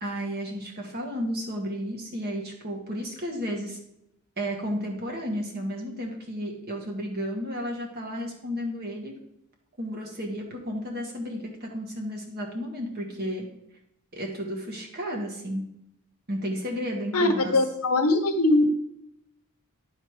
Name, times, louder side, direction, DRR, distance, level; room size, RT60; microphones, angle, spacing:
voice 1, 0.0-3.8 4.4-9.1 9.8-13.5 14.1-15.6 16.3-17.5, equal, 45° right, 1 dB, 1.6 m, -32 dB
voice 2, 17.1-18.7, left 2 dB, 80° left, 6 dB, 1.1 m, -21 dB
10.5 x 4.1 x 4.8 m, 0.79 s
head